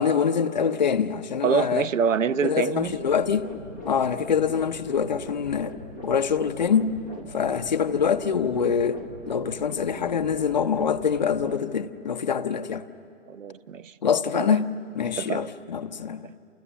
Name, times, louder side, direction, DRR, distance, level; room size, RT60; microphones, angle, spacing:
voice 1, 0.0-1.9 2.4-3.5 3.8-5.7 6.0-6.9 7.3-9.0 9.3-12.8 14.0-14.7 14.9-16.2, left 7 dB, 35° left, 0.7 m, -24 dB
voice 2, 1.4-2.9 13.3-13.9 14.3-14.6 15.2-15.5 16.2-16.3, right 7 dB, 80° right, 0.9 m, -26 dB
sound 1, 2.8-11.6, left 1 dB, 10° right, 0.8 m, -41 dB
30.0 x 28.0 x 7.1 m
hypercardioid pair, 170°, 38 cm